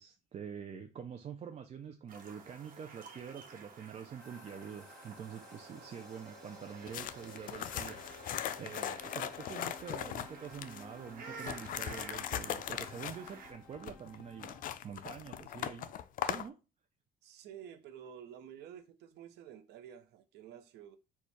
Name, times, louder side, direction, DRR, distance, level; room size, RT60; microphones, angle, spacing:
voice 1, 0.0-15.9 16.2-16.6, right 7 dB, 40° right, 0.5 m, -46 dB
sound 1, 2.1-13.5, right 5 dB, 55° right, 1.2 m, -52 dB
sound 2, 4.2-14.8, left 3 dB, 5° left, 2.4 m, -55 dB
sound 3, 6.9-10.9 11.3-16.5, left 10 dB, 55° left, 0.4 m, -39 dB
voice 2, 17.2-21.0, right 9 dB, 80° right, 0.8 m, -51 dB
4.3 x 2.4 x 4.6 m
cardioid pair, 110°, 17 cm